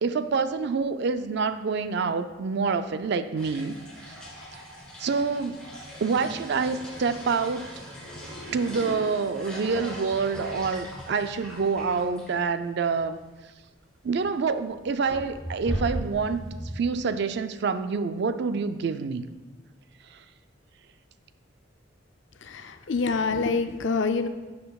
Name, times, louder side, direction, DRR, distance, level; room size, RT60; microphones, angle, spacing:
voice 1, 0.0-3.7 4.1-4.2 5.0-5.6 6.0-7.7 8.5-13.2 14.0-16.4 16.7-19.3 20.1-20.2, right 5 dB, 60° right, 11 dB, 0.4 m, -27 dB
sound 1, 3.4-12.3 12.6-12.7 12.9-13.0 14.0-14.3 14.7-16.8, equal, 5° left, 2.3 m, -38 dB
voice 2, 22.4-24.3, left 4 dB, 65° left, 9 dB, 0.5 m, -26 dB
12.0 x 6.6 x 2.3 m, 1.2 s
head